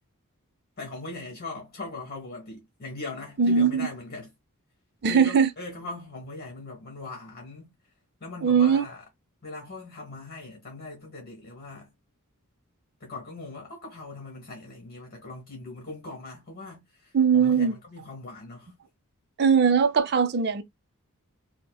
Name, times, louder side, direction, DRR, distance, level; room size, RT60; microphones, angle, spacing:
voice 1, 0.8-4.3 5.1-7.7 8.2-9.0 9.4-11.9 13.0-18.7, left 2 dB, 45° left, 1.4 m, -40 dB
voice 2, 3.4-3.9 5.0-5.5 8.4-8.8 17.1-17.7 19.4-20.6, right 6 dB, 50° right, 0.5 m, -20 dB
5.4 x 2.1 x 2.2 m
head